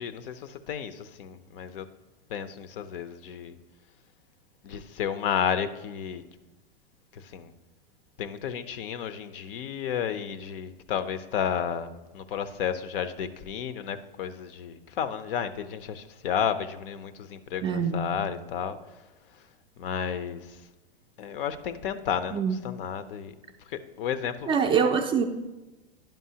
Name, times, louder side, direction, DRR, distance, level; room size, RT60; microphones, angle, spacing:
voice 1, 0.0-1.8 2.3-3.5 4.6-6.2 7.1-7.5 8.2-18.8 19.8-20.4 21.2-23.3 23.7-24.5, left 8 dB, 65° left, 12 dB, 0.6 m, -32 dB
voice 2, 17.6-18.1 22.3-22.6 24.5-25.2, right 6 dB, 20° right, 5 dB, 0.3 m, -24 dB
10.5 x 5.4 x 2.8 m, 1.1 s
hypercardioid pair, 115°, 30 cm